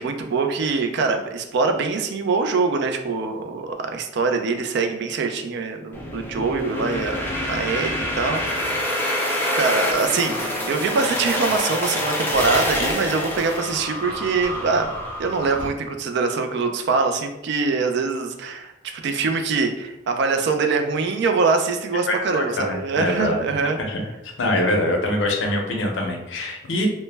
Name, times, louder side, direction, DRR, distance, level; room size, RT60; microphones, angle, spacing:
voice 1, 0.0-8.9 9.5-14.9 15.2-23.8, right 4 dB, 65° right, 5 dB, 0.3 m, -24 dB
sound 1, 5.9-15.7, equal, 10° left, 0.4 m, -26 dB
voice 2, 22.1-23.4 23.9-24.0 24.4-26.9, left 1 dB, 80° left, 1 dB, 0.5 m, -24 dB
2.1 x 2.0 x 3.2 m, 0.95 s
head